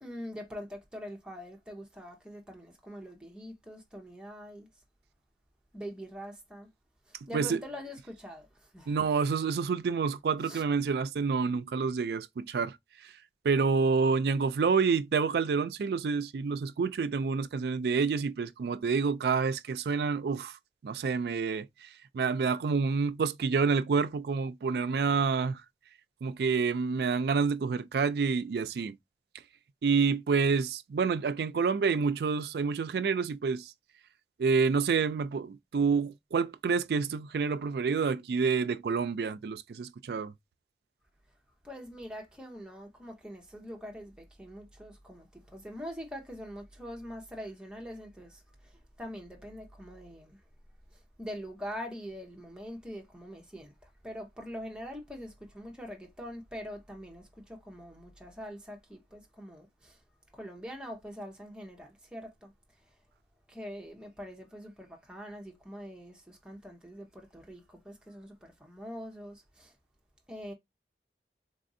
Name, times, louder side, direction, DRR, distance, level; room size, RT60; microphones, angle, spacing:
voice 1, 0.0-4.7 5.7-6.7 7.1-8.9 10.4-10.6 41.6-50.4 50.9-60.0 60.3-62.5 62.8-63.0 63.5-69.7 70.3-70.5, equal, 5° right, 0.7 m, -44 dB
voice 2, 8.9-12.8 13.0-13.1 13.4-20.6 20.8-25.6 26.2-29.0 29.8-33.7 34.4-40.3, right 5 dB, 65° right, 0.3 m, -28 dB
4.0 x 2.5 x 2.6 m
head